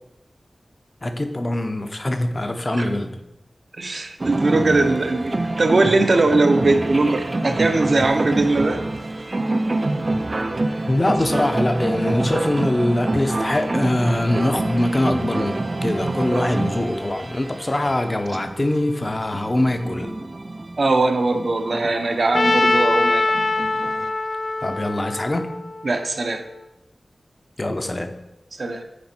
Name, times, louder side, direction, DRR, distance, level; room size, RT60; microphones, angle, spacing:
voice 1, 1.0-3.2 7.4-7.6 10.9-20.2 24.6-25.5 27.6-28.2, left 1 dB, 35° left, 7 dB, 0.7 m, -23 dB
voice 2, 3.8-8.8 20.8-23.3 25.8-26.4 28.6-28.8, right 2 dB, 65° right, 6 dB, 0.8 m, -20 dB
sound 1, 4.2-24.1, right 2 dB, 45° right, 0.4 m, -27 dB
Trumpet, 22.3-26.4, left 2 dB, 60° left, 0.4 m, -22 dB
9.6 x 4.3 x 4.4 m, 0.88 s
wide cardioid pair, 80°, 0 cm